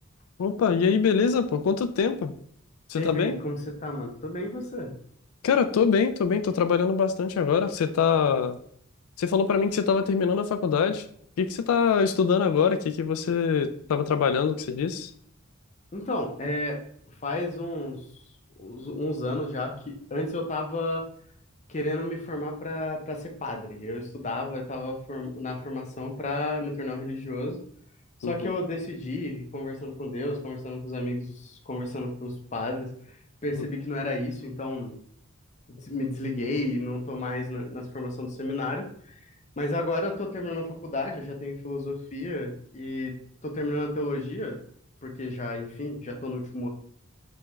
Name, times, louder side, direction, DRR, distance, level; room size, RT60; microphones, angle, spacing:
voice 1, 0.4-2.3 2.9-3.4 5.4-8.6 9.2-11.0 11.4-15.1 28.2-28.5 33.6-33.7, left 6 dB, 75° left, 9 dB, 0.3 m, -24 dB
voice 2, 2.9-4.9 15.9-16.8 17.2-18.0 18.6-21.0 21.7-27.6 28.2-32.9 33.4-34.9 35.7-38.8 39.6-43.1 43.4-44.6 45.0-46.7, left 2 dB, 35° left, 2 dB, 0.6 m, -32 dB
3.5 x 3.4 x 3.0 m, 0.64 s
head